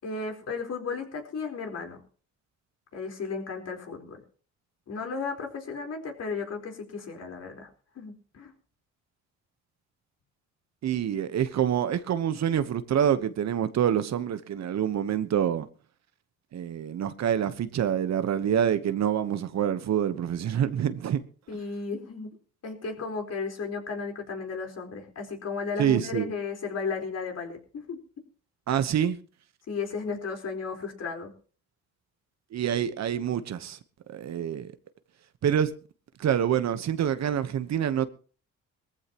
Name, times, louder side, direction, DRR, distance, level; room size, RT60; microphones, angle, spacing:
voice 1, 0.0-2.0 2.9-4.2 4.9-7.7 7.9-8.5 21.5-22.4 22.6-28.0 29.7-31.3, left 4 dB, 55° left, 4.4 m, -34 dB
voice 2, 10.8-15.7 16.5-21.2 25.8-26.3 28.7-29.2 32.5-33.8 34.1-34.7 35.4-35.7 36.2-38.1, right 9 dB, 60° right, 1.2 m, -26 dB
20.5 x 14.5 x 3.0 m
cardioid pair, 90°, 30 cm